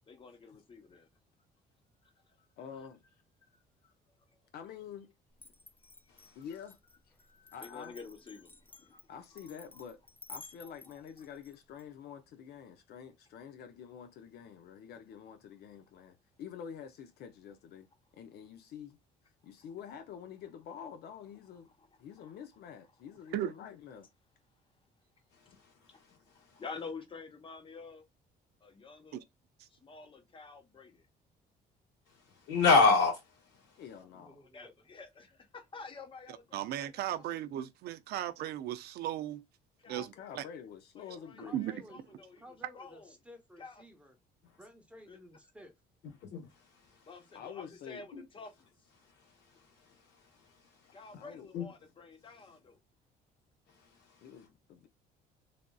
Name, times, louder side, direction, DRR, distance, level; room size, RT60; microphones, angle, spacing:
voice 1, 0.1-1.1 2.0-2.5 3.4-3.5 3.8-3.9 4.3-4.4 7.2-9.0 10.6-10.7 21.8-21.9 26.5-28.0 28.6-29.2 29.7-31.0 34.5-37.4 39.8-40.5 41.0-43.1 43.6-43.8 45.1-45.2 47.1-48.5 50.9-51.7 52.1-52.8, left 4 dB, 30° left, 1.0 m, -49 dB
voice 2, 2.6-3.0 4.5-5.1 6.4-6.8 7.5-8.0 9.1-10.0 10.3-17.9 18.1-19.0 19.4-21.7 22.0-24.1 33.8-34.4 39.9-41.6 47.3-48.1 51.2-51.5 54.2-54.9, left 8 dB, 70° left, 0.6 m, -47 dB
Glass, 5.4-11.8, left 3 dB, 10° left, 0.4 m, -53 dB
voice 3, 6.1-6.5 25.3-26.6 32.0-34.3 44.4-44.7 46.0-47.4 48.1-48.3 48.9-51.2 51.5-51.7 52.2-52.7 53.7-54.5, left 4 dB, 85° left, 1.9 m, -33 dB
voice 4, 34.0-34.7 41.4-44.1 44.6-45.7, equal, 5° right, 1.0 m, -55 dB
voice 5, 36.5-39.4 39.9-40.4 41.5-41.8, right 12 dB, 70° right, 0.5 m, -36 dB
3.3 x 2.6 x 2.3 m
cardioid pair, 110°, 17 cm